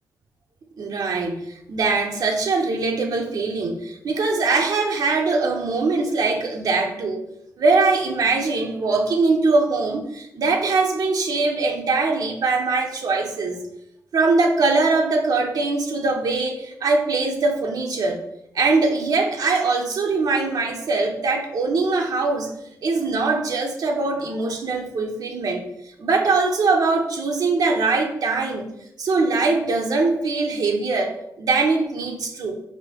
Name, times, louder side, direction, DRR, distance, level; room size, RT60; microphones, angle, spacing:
voice 1, 0.8-1.4 1.7-7.3 7.6-13.6 14.1-18.2 18.5-22.5 22.8-25.6 26.0-28.7 29.0-32.6, right 3 dB, 65° right, 2 dB, 0.5 m, -22 dB
4.2 x 2.6 x 2.8 m, 0.78 s
cardioid pair, 95°, 7 cm